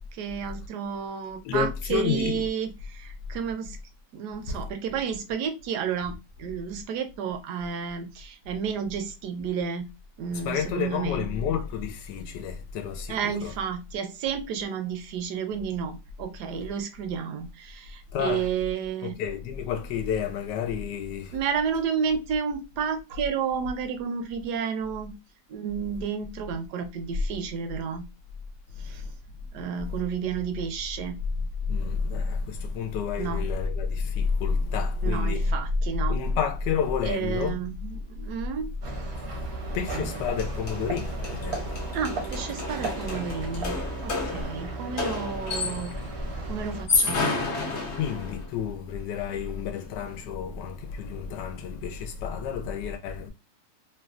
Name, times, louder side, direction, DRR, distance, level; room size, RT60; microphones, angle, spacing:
voice 1, 0.1-3.8 4.1-9.9 10.2-11.2 13.1-19.2 21.3-25.2 25.5-28.0 28.8-29.0 29.5-31.2 33.2-33.4 35.0-36.2 37.0-38.7 41.9-43.7 44.0-45.9 46.5-47.3, right 7 dB, 75° right, 1.1 m, -31 dB
voice 2, 1.4-2.4 4.5-4.6 10.3-13.5 18.1-18.5 19.0-21.4 31.7-35.5 36.1-37.6 39.7-41.6 45.6-45.8 48.0-53.3, left 6 dB, 80° left, 1.1 m, -29 dB
sound 1, 38.8-46.9, right 2 dB, 55° right, 0.7 m, -35 dB
sound 2, 40.1-40.2 40.4-46.0 46.7-48.5, left 3 dB, 55° left, 0.8 m, -31 dB
3.2 x 2.2 x 2.4 m
omnidirectional pair, 1.9 m